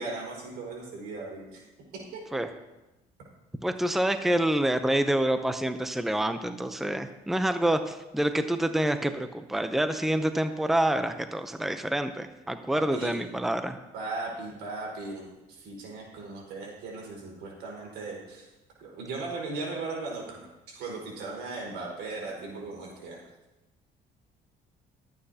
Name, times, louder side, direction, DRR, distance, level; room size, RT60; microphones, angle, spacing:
voice 1, 0.0-1.6 2.1-2.4 12.7-13.2 13.9-15.2 15.5-18.5 18.8-23.2, right 3 dB, 85° right, -2 dB, 4.8 m, -37 dB
voice 2, 3.6-13.8, right 1 dB, ahead, 9 dB, 0.6 m, -27 dB
22.0 x 8.9 x 2.8 m, 1.0 s
cardioid pair, 110°, 17 cm